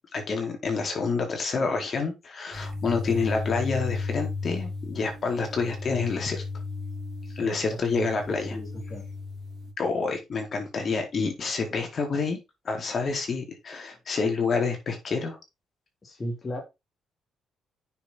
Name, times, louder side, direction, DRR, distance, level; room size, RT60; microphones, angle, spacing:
voice 1, 0.1-6.4 7.4-8.6 9.8-12.4 12.6-15.4, left 4 dB, 45° left, 4.2 m, -28 dB
sound 1, 2.5-9.7, left 3 dB, 50° right, 3.4 m, -34 dB
voice 2, 7.3-9.0 16.0-16.6, equal, 30° left, 3.5 m, -36 dB
9.2 x 7.0 x 4.2 m
cardioid pair, 90°, 0 cm